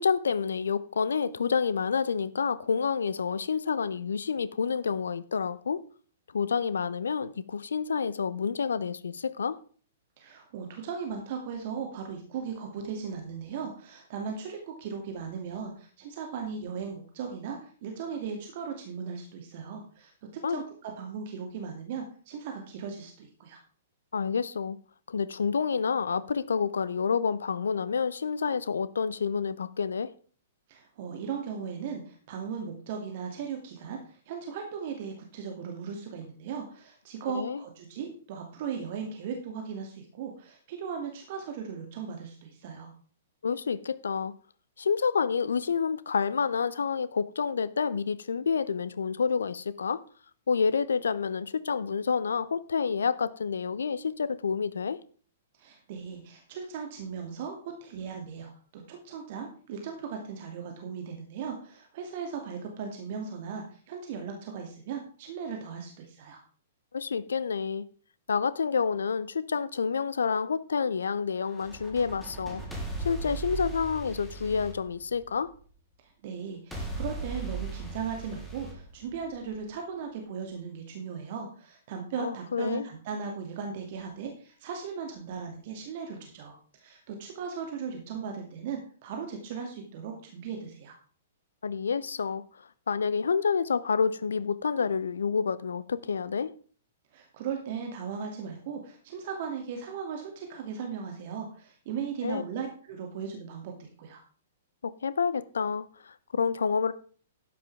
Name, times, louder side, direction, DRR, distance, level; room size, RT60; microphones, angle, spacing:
voice 1, 0.0-5.8 6.3-9.6 20.4-20.6 24.1-24.8 25.1-30.1 37.3-37.6 43.4-44.3 44.8-50.0 50.5-55.0 66.9-67.9 68.3-72.6 73.0-75.5 82.2-82.9 91.6-92.4 92.9-96.5 102.2-102.4 104.8-106.9, left 6 dB, 70° left, 0.7 m, -28 dB
voice 2, 10.2-23.6 30.7-42.9 55.6-66.4 76.0-90.9 97.1-104.2, right 6 dB, 45° right, 2.4 m, -37 dB
sound 1, 71.4-75.6 76.7-79.6, right 3 dB, 5° left, 3.3 m, -38 dB
12.5 x 10.5 x 3.5 m
figure-of-eight pair, 110°, 0 cm